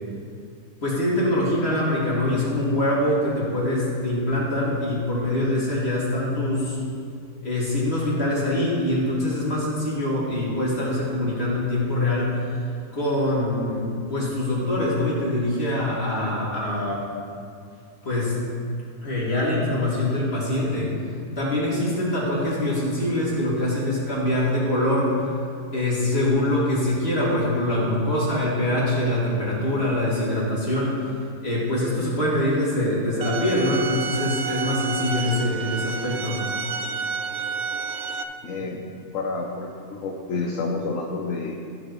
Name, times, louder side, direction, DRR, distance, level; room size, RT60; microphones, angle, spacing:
voice 1, 0.8-6.8 7.4-12.5 12.9-17.1 18.0-18.3 19.0-20.9 21.4-25.4 25.7-31.1 31.4-36.4, left 1 dB, 40° left, -7 dB, 2.8 m, -24 dB
sound 1, 33.2-38.2, right 5 dB, 75° right, 1.1 m, -30 dB
voice 2, 38.4-41.5, left 3 dB, 60° left, 0 dB, 1.1 m, -29 dB
15.0 x 7.3 x 3.1 m, 2.4 s
omnidirectional pair, 1.6 m